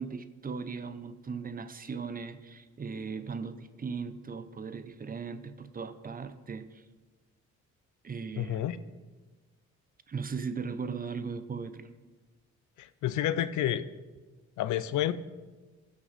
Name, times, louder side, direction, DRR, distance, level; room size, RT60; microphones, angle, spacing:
voice 1, 0.0-6.8 8.0-8.7 10.1-11.9, right 5 dB, 30° right, 11 dB, 0.7 m, -38 dB
voice 2, 8.4-8.8 12.8-13.8 14.6-15.1, left 12 dB, 75° left, 14 dB, 0.6 m, -29 dB
16.5 x 6.0 x 4.1 m, 1.3 s
cardioid pair, 90°, 30 cm